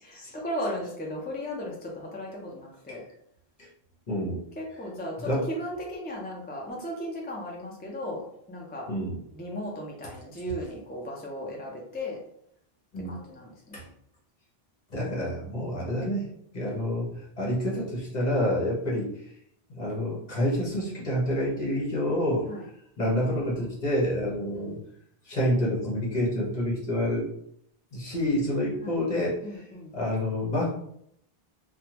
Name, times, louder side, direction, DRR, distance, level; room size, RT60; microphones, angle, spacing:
voice 1, 0.0-3.0 4.6-8.9 9.3-12.2 13.1-13.9 22.5-22.6 24.5-24.8 28.8-29.0 29.4-29.9, equal, 15° left, -2 dB, 0.3 m, -36 dB
voice 2, 4.1-4.4 5.2-5.4 8.9-9.2 12.9-13.2 13.7-13.8 14.9-16.3 16.5-17.1 17.4-19.1 19.7-22.5 23.0-24.8 25.3-27.3 27.9-29.6 29.9-30.7, left 1 dB, 45° left, -5 dB, 1.1 m, -28 dB
3.4 x 2.2 x 2.9 m, 0.72 s
omnidirectional pair, 1.0 m